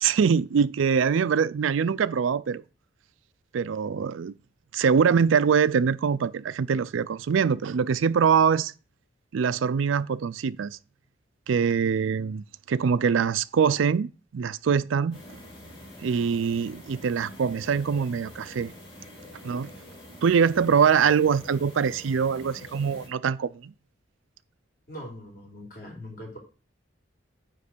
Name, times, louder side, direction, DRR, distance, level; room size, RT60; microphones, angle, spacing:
voice 1, 0.0-2.6 3.5-4.3 4.7-8.7 9.3-10.8 11.5-15.2 16.0-18.7 19.4-19.7 20.2-23.7, right 6 dB, 85° right, 0.4 m, -23 dB
sound 1, 15.1-23.1, left 1 dB, 25° left, 2.5 m, -46 dB
voice 2, 24.9-26.4, equal, 45° left, 3.3 m, -41 dB
9.5 x 3.2 x 6.7 m
head